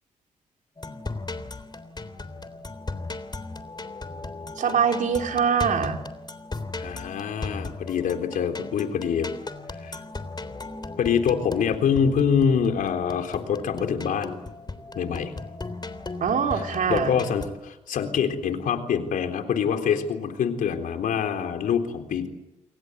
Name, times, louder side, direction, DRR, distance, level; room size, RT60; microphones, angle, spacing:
sound 1, 0.8-17.5, left 3 dB, 30° left, 3.5 m, -37 dB
voice 1, 4.6-6.0 16.2-17.2, right 7 dB, 70° right, 3 dB, 3.6 m, -23 dB
voice 2, 6.8-9.3 9.8-10.0 11.0-14.4 15.0-15.3 16.5-16.6 16.9-22.3, left 7 dB, 80° left, 5 dB, 3.8 m, -25 dB
29.5 x 23.0 x 8.1 m, 0.94 s
supercardioid pair, 55°, 14 cm